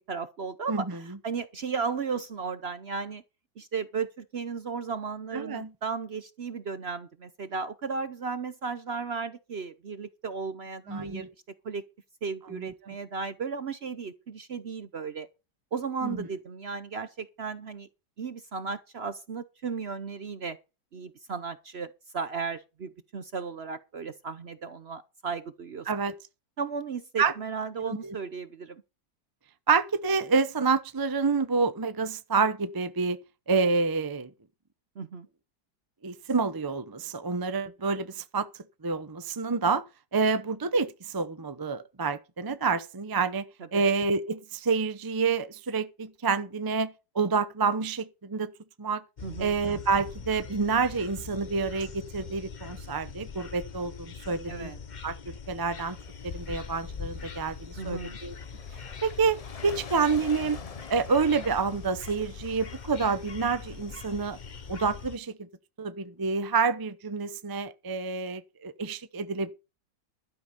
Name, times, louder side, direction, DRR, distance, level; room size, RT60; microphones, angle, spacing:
voice 1, 0.1-3.2 3.6-11.3 11.6-11.8 12.2-15.3 15.7-17.9 18.2-20.6 20.9-25.9 26.6-28.8 35.0-35.3 43.7-43.9 49.2-49.6 54.5-54.8 57.8-58.2, right 5 dB, 50° right, 0.8 m, -35 dB
voice 2, 0.7-1.0 5.3-5.7 10.9-11.3 12.5-12.7 16.0-16.3 25.9-26.2 27.2-27.3 27.8-28.2 29.7-33.2 33.5-34.3 36.0-38.5 38.8-39.8 40.1-43.5 43.7-48.5 48.8-49.0 49.4-54.7 55.0-56.0 56.2-58.3 59.0-59.4 59.6-60.6 60.9-64.4 64.7-65.5 65.8-69.5, right 4 dB, 25° right, 0.4 m, -28 dB
sound 1, 49.2-65.2, left 5 dB, 35° left, 0.7 m, -43 dB
sound 2, 56.0-65.1, left 5 dB, 65° left, 0.3 m, -46 dB
12.5 x 9.7 x 5.2 m
omnidirectional pair, 1.9 m